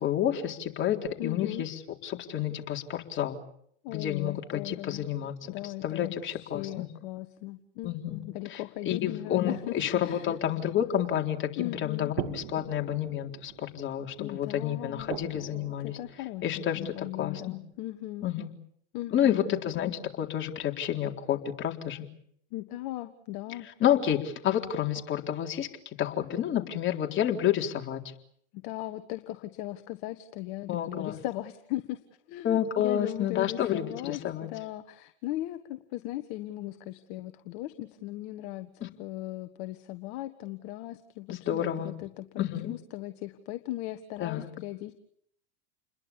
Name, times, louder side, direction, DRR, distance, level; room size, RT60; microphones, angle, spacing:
voice 1, 0.0-3.4 3.9-6.9 7.8-8.2 8.5-8.6 8.9-16.0 16.4-17.6 18.2-18.5 19.1-22.1 23.8-25.7 26.0-28.0 30.7-31.2 32.4-34.5 38.8-38.9 41.3-41.9 42.4-42.7 44.2-44.5, left 10 dB, 35° left, 3 dB, 3.9 m, -30 dB
voice 2, 1.2-1.6 3.8-5.1 5.5-9.7 10.0-10.3 11.6-12.1 14.2-15.2 15.8-18.3 18.9-19.6 22.5-23.7 28.5-32.0 32.3-34.2 34.5-44.9, left 15 dB, 55° left, 9 dB, 1.6 m, -38 dB
sound 1, 10.1-17.9, right 13 dB, 60° right, 2.2 m, -44 dB
30.0 x 21.5 x 7.2 m, 0.69 s
hypercardioid pair, 95°, 33 cm